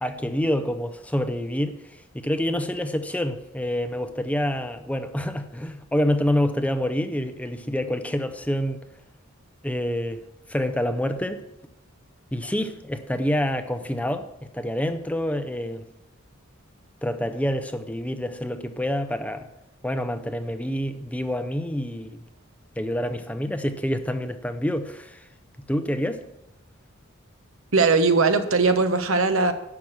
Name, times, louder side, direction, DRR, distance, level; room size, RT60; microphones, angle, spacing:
voice 1, 0.0-8.8 9.6-10.2 10.5-11.4 12.3-15.9 17.0-19.5 19.8-22.2 22.8-25.3 25.7-26.2, equal, 5° left, 0.5 m, -27 dB
voice 2, 27.7-29.5, right 4 dB, 70° right, 1.1 m, -19 dB
11.5 x 6.0 x 7.5 m
head